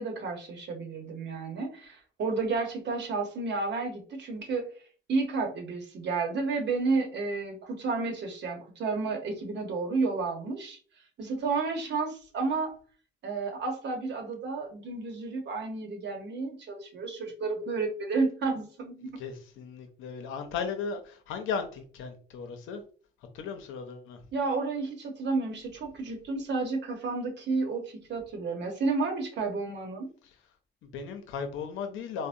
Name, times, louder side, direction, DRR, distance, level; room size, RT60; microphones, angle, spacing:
voice 1, 0.0-4.7 5.1-10.8 11.2-12.7 13.2-19.2 24.3-30.1, right 3 dB, 60° right, 1.0 m, -31 dB
voice 2, 19.2-22.8 23.3-24.2 30.2-30.3 30.8-32.3, left 6 dB, 90° left, 0.6 m, -36 dB
3.5 x 2.0 x 2.5 m
cardioid pair, 90°, 20 cm